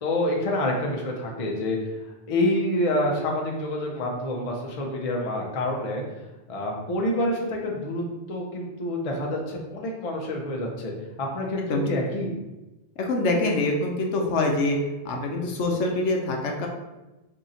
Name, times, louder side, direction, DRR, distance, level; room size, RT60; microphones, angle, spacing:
voice 1, 0.0-1.8 2.3-6.0 6.5-10.9 11.2-12.4, left 1 dB, 40° left, 0 dB, 0.5 m, -27 dB
voice 2, 13.0-14.8 15.0-16.7, left 2 dB, 80° left, 1 dB, 0.9 m, -25 dB
2.8 x 2.5 x 4.0 m, 1.0 s
omnidirectional pair, 1.2 m